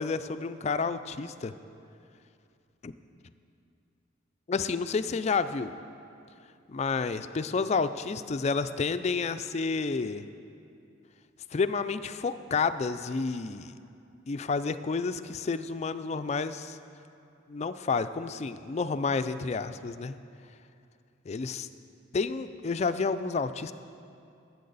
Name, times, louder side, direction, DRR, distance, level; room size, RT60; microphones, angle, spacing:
voice 1, 0.0-1.5 2.8-2.9 4.5-5.7 6.7-10.3 11.5-13.7 14.3-16.8 17.5-20.1 21.3-21.7 22.1-23.7, left 4 dB, 35° left, 12 dB, 0.3 m, -30 dB
19.5 x 8.4 x 4.0 m, 2.5 s
head